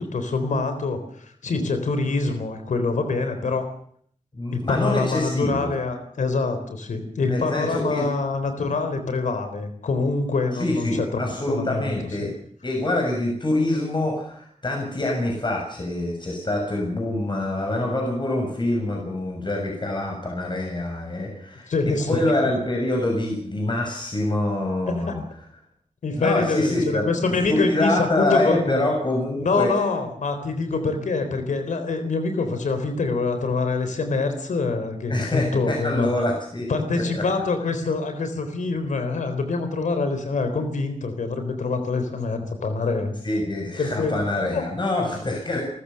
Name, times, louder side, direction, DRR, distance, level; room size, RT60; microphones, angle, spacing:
voice 1, 0.0-3.7 4.5-11.2 11.5-11.9 21.7-22.2 24.9-25.0 26.0-26.8 27.1-28.8 29.4-36.1 36.7-43.1 43.8-44.1 44.5-44.6, left 3 dB, 85° left, 7 dB, 3.8 m, -25 dB
voice 2, 4.3-5.7 7.3-8.1 10.6-12.3 12.6-25.2 26.1-29.7 35.1-36.7 37.2-37.3 43.2-45.6, left 1 dB, 40° left, 1 dB, 6.7 m, -25 dB
29.0 x 14.5 x 7.0 m, 0.62 s
wide cardioid pair, 80°, 13 cm